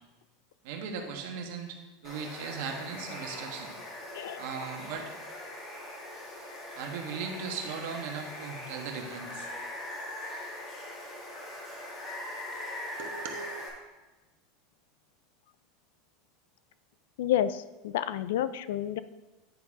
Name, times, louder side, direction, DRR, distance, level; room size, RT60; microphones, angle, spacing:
voice 1, 0.6-3.7 4.4-5.1 6.7-9.5 13.0-13.5, right 5 dB, 65° right, 3 dB, 1.2 m, -38 dB
Water, 2.0-13.7, left 1 dB, 25° left, 1.7 m, -41 dB
voice 2, 17.2-19.0, left 11 dB, 80° left, 14 dB, 0.3 m, -30 dB
9.4 x 4.0 x 4.8 m, 1.1 s
supercardioid pair, 160°, 0 cm